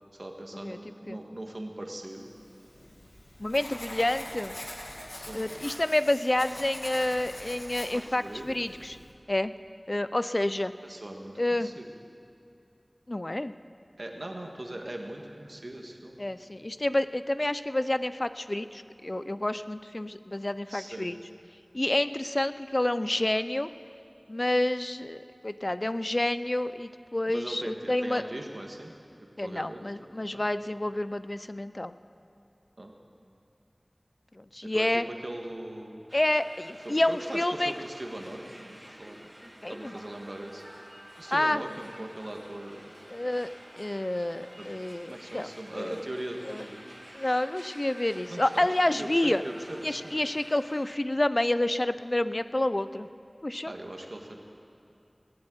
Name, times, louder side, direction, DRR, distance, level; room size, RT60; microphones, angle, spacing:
voice 1, 0.1-2.3 5.1-5.5 7.9-8.8 10.8-11.9 14.0-16.2 20.7-21.1 27.3-28.9 29.4-29.8 30.3-30.4 32.8-32.9 34.6-36.0 36.8-39.2 39.7-40.6 41.2-42.9 44.6-44.7 45.1-46.8 48.3-50.2 53.6-54.4, right 1 dB, 70° right, 2 dB, 1.7 m, -40 dB
Writing, 2.4-9.1, left 1 dB, 85° left, 2.1 m, -43 dB
voice 2, 3.4-4.6 5.3-9.0 9.3-9.5 9.9-10.7 11.4-11.7 13.1-13.5 16.2-21.2 21.7-23.7 24.3-28.2 29.4-31.9 34.4-35.0 36.1-37.7 39.6-39.9 41.3-41.6 43.1-43.5 43.7-46.0 46.4-46.6 47.1-49.4 49.8-53.1 53.4-53.7, left 1 dB, 45° left, 13 dB, 0.4 m, -29 dB
sound 1, 36.1-51.0, equal, 20° right, 2.3 m, -50 dB
20.0 x 7.8 x 9.0 m, 2.6 s
wide cardioid pair, 40°, 0 cm